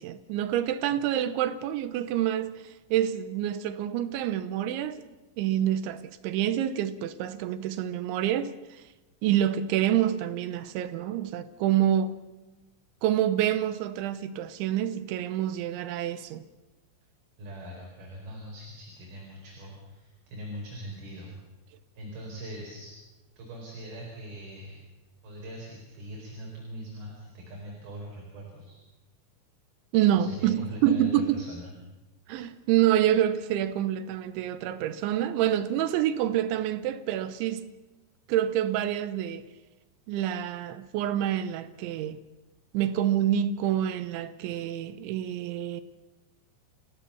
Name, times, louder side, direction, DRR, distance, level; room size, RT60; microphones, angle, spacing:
voice 1, 0.0-5.0 5.4-8.8 9.2-12.2 13.0-16.4 29.9-31.4 32.3-37.7 38.3-39.4 40.1-42.2 42.7-45.8, right 11 dB, 75° right, 3.0 m, -27 dB
voice 2, 17.4-21.4 22.0-23.0 23.4-24.7 25.2-28.8 30.1-31.7, equal, 50° right, 6.2 m, -41 dB
29.5 x 16.5 x 7.0 m
omnidirectional pair, 5.7 m